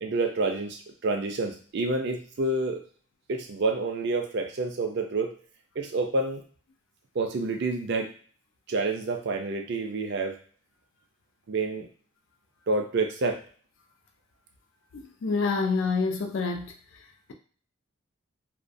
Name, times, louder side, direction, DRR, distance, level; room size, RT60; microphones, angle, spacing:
voice 1, 0.0-2.8 3.3-5.3 5.8-6.4 7.2-8.1 8.7-10.4 11.5-11.9 12.7-13.4, right 3 dB, 55° right, 3 dB, 0.4 m, -28 dB
voice 2, 14.9-16.7, left 4 dB, 60° left, 4 dB, 0.4 m, -27 dB
2.3 x 2.1 x 2.5 m, 0.43 s
head